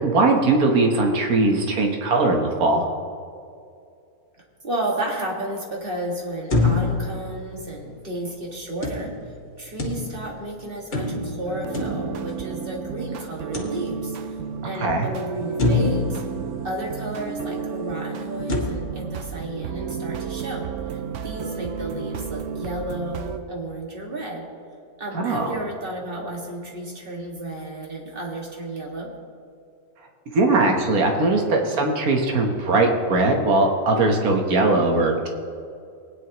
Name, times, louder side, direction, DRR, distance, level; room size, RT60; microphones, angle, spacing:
voice 1, 0.0-2.9 14.8-15.1 25.1-25.5 30.3-35.3, right 2 dB, 80° right, 2 dB, 1.7 m, -20 dB
voice 2, 4.6-9.1 9.6-14.4 14.6-16.2 16.6-24.4 25.0-29.1, right 1 dB, 40° right, -1 dB, 2.1 m, -32 dB
sound 1, 6.5-8.1 8.8-10.4 10.9-12.8 13.5-14.4 14.9-15.0 15.6-17.3 18.5-18.6, left 3 dB, 45° left, 1.9 m, -26 dB
sound 2, 11.5-23.4, right 7 dB, 65° right, 0.9 m, -32 dB
19.5 x 9.9 x 3.0 m, 2.4 s
omnidirectional pair, 1.5 m